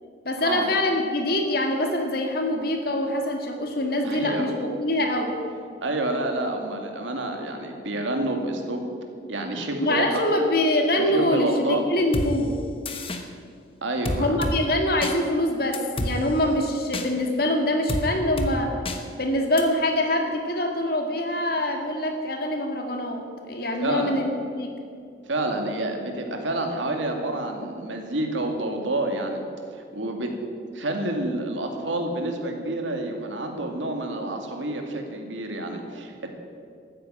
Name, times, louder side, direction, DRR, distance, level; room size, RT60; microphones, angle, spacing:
voice 1, 0.2-5.4 9.8-12.6 14.2-18.7 19.2-24.3 24.5-24.7, left 1 dB, 55° left, 3 dB, 2.2 m, -24 dB
voice 2, 4.0-4.5 5.8-8.9 9.3-10.2 11.0-11.8 13.8-14.4 23.8-24.1 25.3-29.4 29.7-30.3 30.7-36.3, right 2 dB, 90° right, 3 dB, 2.2 m, -28 dB
sound 1, 12.1-12.3 12.9-13.2 14.1-14.6 15.0-15.1 15.7-16.1 16.9-17.1 17.9-18.0 18.4-18.5 18.9-19.0 19.6-19.7, left 1 dB, 30° left, 1.1 m, -28 dB
13.5 x 9.5 x 9.0 m, 2.3 s
head